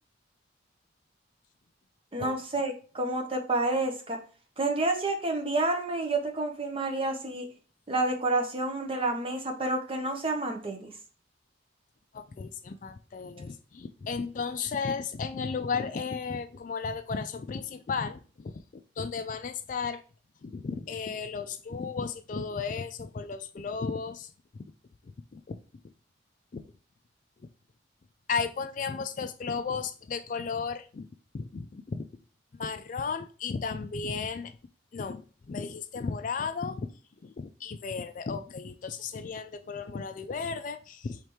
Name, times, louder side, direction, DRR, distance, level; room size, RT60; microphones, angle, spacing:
voice 1, 2.1-4.2 4.6-7.5 7.9-10.9, right 2 dB, 30° right, 0.7 m, -29 dB
voice 2, 12.1-20.0 20.4-24.6 25.0-25.6 26.5-26.7 28.3-31.1 31.3-32.1 32.5-34.5 34.9-36.9 37.2-41.3, left 5 dB, 40° left, 0.3 m, -34 dB
4.8 x 3.2 x 3.0 m
head